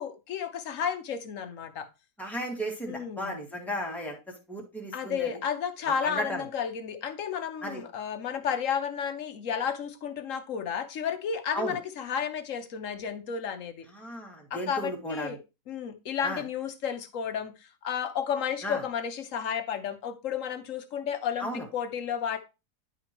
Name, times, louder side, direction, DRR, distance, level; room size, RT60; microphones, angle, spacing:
voice 1, 0.0-1.9 2.9-3.4 4.9-13.9 14.5-15.4 15.7-22.4, left 7 dB, 55° left, 1.1 m, -32 dB
voice 2, 2.2-5.4 5.9-6.4 7.6-7.8 11.5-11.8 13.9-15.4 16.2-16.4 18.6-18.8 21.4-21.7, equal, ahead, 1.8 m, -35 dB
10.5 x 5.1 x 3.0 m
omnidirectional pair, 1.8 m